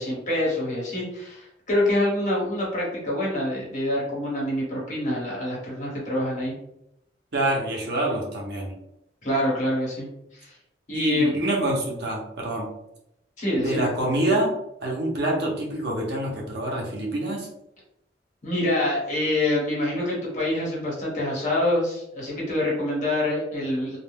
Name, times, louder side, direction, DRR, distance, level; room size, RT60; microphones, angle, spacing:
voice 1, 0.0-6.5 9.2-10.1 10.4-10.5 10.9-11.3 13.4-13.9 18.4-24.0, left 1 dB, 45° left, -5 dB, 1.2 m, -26 dB
voice 2, 7.3-8.7 10.9-12.7 13.6-14.5 14.8-17.5, right 1 dB, 65° right, -2 dB, 0.8 m, -26 dB
2.4 x 2.2 x 3.3 m, 0.81 s
head